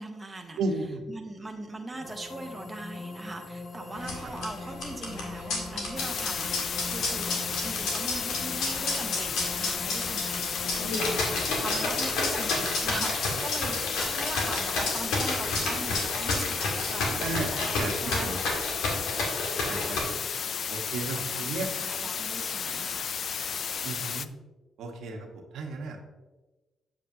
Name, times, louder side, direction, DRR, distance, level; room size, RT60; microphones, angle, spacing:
voice 1, 0.0-0.6 1.1-11.2 11.6-18.4 19.6-20.0 21.1-21.4 21.7-23.1, right 2 dB, 15° right, 2 dB, 1.0 m, -40 dB
voice 2, 0.6-1.0 1.9-2.0 11.5-11.9 17.2-18.4 19.7-20.0 20.7-21.7 23.8-24.3 24.8-26.0, right 3 dB, 80° right, 1 dB, 1.3 m, -34 dB
sound 1, 2.0-11.5, left 3 dB, 30° left, 0.7 m, -42 dB
sound 2, 3.9-20.0, left 2 dB, 90° left, 1.9 m, -31 dB
sound 3, 6.0-24.3, left 7 dB, 55° left, 0.3 m, -33 dB
8.2 x 7.5 x 2.7 m, 1.2 s
cardioid pair, 90°, 0 cm